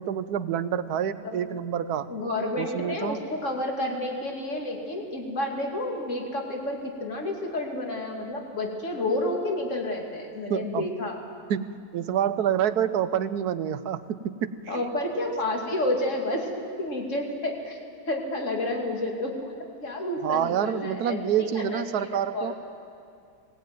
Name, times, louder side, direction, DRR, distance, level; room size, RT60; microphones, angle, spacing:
voice 1, 0.0-2.1 2.6-3.2 10.5-10.9 11.5-14.8 20.2-22.5, right 9 dB, 85° right, 13 dB, 1.3 m, -27 dB
voice 2, 2.1-11.2 14.7-22.5, left 1 dB, 50° left, 0 dB, 3.0 m, -30 dB
20.0 x 18.5 x 9.2 m, 2.3 s
omnidirectional pair, 1.6 m